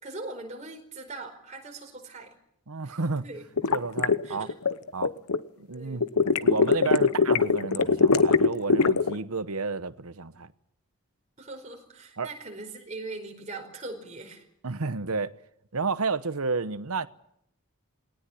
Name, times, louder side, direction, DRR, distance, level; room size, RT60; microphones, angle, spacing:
voice 1, 0.0-2.3 2.8-3.5 4.2-4.5 5.7-6.1 11.4-14.5, right 2 dB, 30° right, 4.8 m, -41 dB
voice 2, 2.7-3.2 3.7-4.5 4.9-5.1 5.6-6.0 6.4-10.5 12.2-12.3 14.6-15.3 15.7-17.1, right 4 dB, 80° right, 1.0 m, -31 dB
sound 1, 3.6-5.4 6.0-9.1, left 4 dB, 85° left, 1.0 m, -21 dB
21.0 x 18.5 x 10.0 m
head